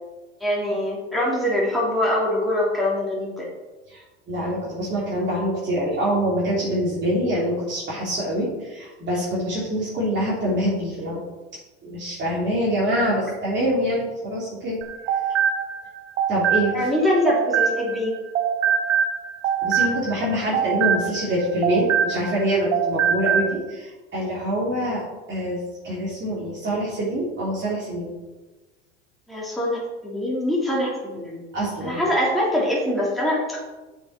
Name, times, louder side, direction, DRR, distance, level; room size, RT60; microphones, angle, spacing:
voice 1, 0.4-3.4 16.7-18.1 29.3-31.4 31.8-33.6, left 1 dB, ahead, -5 dB, 2.9 m, -23 dB
voice 2, 3.9-11.2 11.8-14.8 16.3-16.7 19.6-25.6 25.8-28.1 31.5-32.0, equal, 30° right, -6 dB, 3.0 m, -25 dB
sound 1, 14.8-18.1 18.3-22.4 22.7-23.5, right 7 dB, 80° right, 1.0 m, -23 dB
8.3 x 7.1 x 4.3 m, 1.2 s
hypercardioid pair, 85°, 35 cm